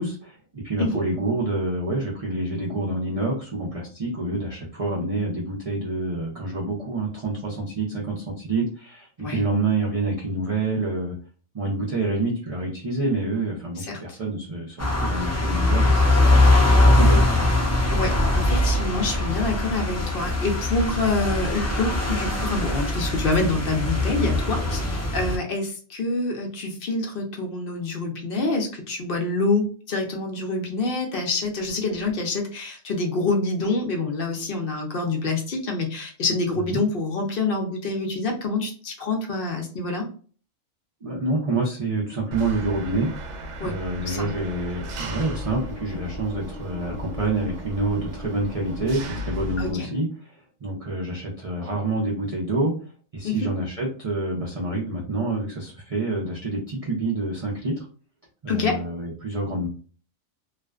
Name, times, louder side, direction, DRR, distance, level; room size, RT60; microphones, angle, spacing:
voice 1, 0.0-11.2 11.5-17.2 36.6-36.8 41.0-43.1 43.6-52.7 53.1-57.8 58.4-59.7, right 2 dB, 50° right, -3 dB, 0.4 m, -27 dB
sound 1, 14.8-25.4, left 2 dB, 20° left, 0.4 m, -21 dB
voice 2, 17.9-40.1 43.6-43.8 44.1-44.3 49.6-49.9 53.2-53.5 58.5-58.8, left 3 dB, 55° left, 2 dB, 0.6 m, -26 dB
Engine, 42.3-49.7, equal, 70° right, 0.8 m, -35 dB
2.4 x 2.2 x 2.3 m, 0.40 s
omnidirectional pair, 1.4 m